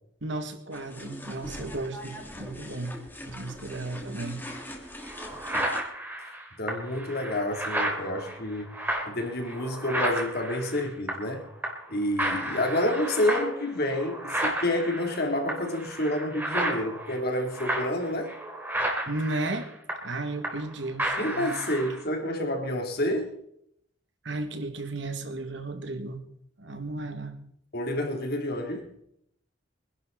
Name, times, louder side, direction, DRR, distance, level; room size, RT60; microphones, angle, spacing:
voice 1, 0.2-4.5 19.1-19.7 20.0-21.5 24.2-26.2 26.6-27.3, right 2 dB, 65° right, 7 dB, 2.1 m, -34 dB
sound 1, 0.7-5.8, equal, 10° left, 2.6 m, -41 dB
sound 2, 4.5-4.6 5.0-11.4 11.6-11.9 12.2-20.7 21.0-22.0, right 1 dB, 10° right, 3.2 m, -32 dB
voice 2, 6.6-11.5 11.9-18.3 21.2-23.4 27.7-28.9, left 1 dB, 55° left, 3 dB, 3.1 m, -29 dB
25.0 x 11.5 x 4.0 m, 0.72 s
head